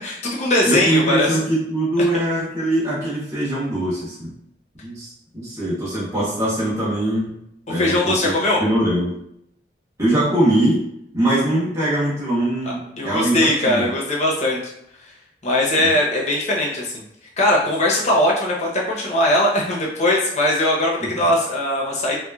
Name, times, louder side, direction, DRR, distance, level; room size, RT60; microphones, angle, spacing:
voice 1, 0.0-1.4 7.8-8.6 13.0-14.6 15.0-15.1 15.4-17.0 17.4-22.1, left 1 dB, 40° left, -3 dB, 0.8 m, -20 dB
voice 2, 0.6-4.3 4.8-7.4 7.7-8.3 8.6-9.2 10.0-10.8 11.1-13.9 15.8-15.9 21.0-21.1, right 1 dB, 20° right, -10 dB, 1.3 m, -22 dB
3.2 x 3.0 x 2.3 m, 0.77 s
head